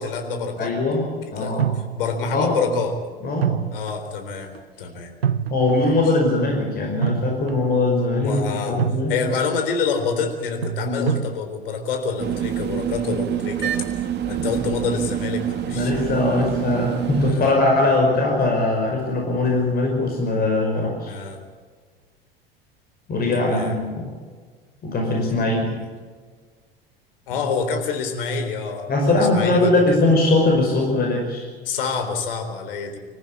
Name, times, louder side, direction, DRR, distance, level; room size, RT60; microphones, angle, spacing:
voice 1, 0.0-0.7 1.4-3.0 3.7-4.5 4.8-5.1 5.8-6.0 8.2-8.8 9.1-16.4 17.3-17.5 21.1-21.4 23.3-23.8 25.3-25.9 27.3-29.7 31.6-33.0, left 5 dB, 65° left, 6 dB, 3.8 m, -27 dB
voice 2, 0.6-1.7 2.3-2.6 3.2-3.6 5.5-9.1 10.8-11.1 14.4-14.5 15.7-21.1 23.1-24.1 24.8-25.7 28.9-31.5, left 2 dB, 30° left, 1 dB, 5.6 m, -21 dB
sound 1, 1.6-2.4 3.4-4.1 4.5-4.6 5.2-5.9 7.0-7.8 8.1-8.4 8.8-9.5 10.6-11.4, right 8 dB, 80° right, 0.6 m, -26 dB
sound 2, 12.2-17.3, right 10 dB, 35° right, 2.0 m, -26 dB
26.0 x 14.5 x 8.4 m, 1.5 s
figure-of-eight pair, 75°, 30 cm